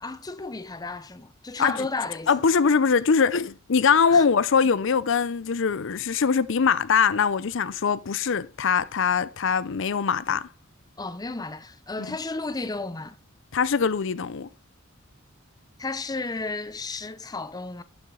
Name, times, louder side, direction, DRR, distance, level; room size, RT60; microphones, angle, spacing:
voice 1, 0.0-2.3 4.1-4.3 11.0-13.2 15.8-17.8, left 3 dB, 20° left, 0.6 m, -33 dB
voice 2, 2.3-10.5 12.1-12.2 13.5-14.5, left 6 dB, 65° left, 0.6 m, -22 dB
12.0 x 7.1 x 3.8 m
head